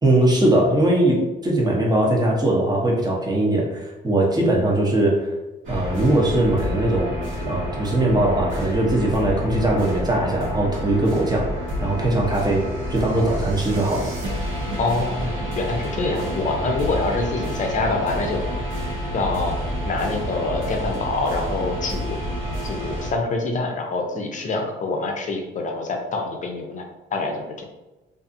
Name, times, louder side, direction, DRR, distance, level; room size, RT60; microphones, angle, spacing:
voice 1, 0.0-5.3 5.7-7.2 7.4-11.5 11.8-14.1, right 1 dB, 20° right, -2 dB, 0.8 m, -20 dB
sound 1, 5.6-23.1, equal, 80° right, 1.0 m, -29 dB
voice 2, 14.8-18.4 19.1-19.5 19.9-22.2 22.6-26.8 27.1-27.6, left 3 dB, 40° left, 2 dB, 0.6 m, -25 dB
2.6 x 2.5 x 2.5 m, 1.0 s
cardioid pair, 90°, 20 cm